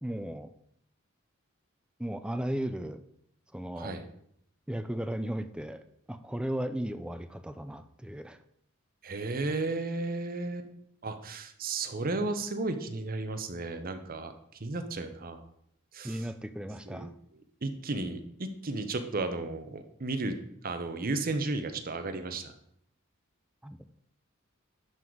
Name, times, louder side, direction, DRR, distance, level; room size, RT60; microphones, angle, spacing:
voice 1, 0.0-0.5 2.0-3.0 3.5-4.0 4.7-8.4 16.0-17.2 23.6-24.0, right 1 dB, 5° right, 10 dB, 0.4 m, -36 dB
voice 2, 3.8-4.1 9.0-10.7 11.0-14.3 14.6-15.5 15.9-16.3 16.9-17.1 17.6-20.4 20.6-22.5, right 2 dB, 45° right, 8 dB, 0.8 m, -34 dB
11.0 x 4.0 x 4.6 m, 0.72 s
head